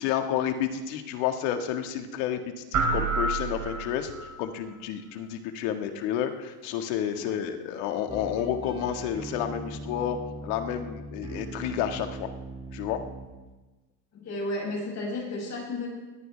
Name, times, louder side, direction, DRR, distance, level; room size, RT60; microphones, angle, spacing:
voice 1, 0.0-2.4 2.7-10.2 10.4-12.3 12.7-13.0, left 10 dB, 65° left, 6 dB, 1.9 m, -30 dB
sound 1, 2.7-4.3, right 3 dB, 35° right, 3.2 m, -28 dB
voice 2, 7.2-7.5 14.1-15.9, left 2 dB, 35° left, -1 dB, 6.5 m, -33 dB
sound 2, 8.1-13.3, right 2 dB, 10° right, 2.2 m, -40 dB
21.0 x 14.5 x 3.4 m, 1.2 s
supercardioid pair, 110°, 49 cm